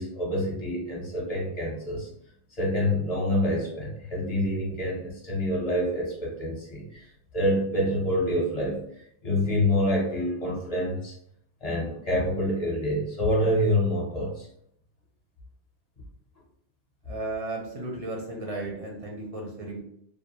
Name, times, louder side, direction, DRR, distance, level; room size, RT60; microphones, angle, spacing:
voice 1, 0.0-2.1 2.6-7.0 7.3-8.8 9.2-11.1 11.6-14.5, left 1 dB, 40° left, -3 dB, 0.8 m, -27 dB
voice 2, 17.0-19.8, right 2 dB, 45° right, -1 dB, 0.5 m, -34 dB
2.4 x 2.2 x 2.9 m, 0.72 s
omnidirectional pair, 1.2 m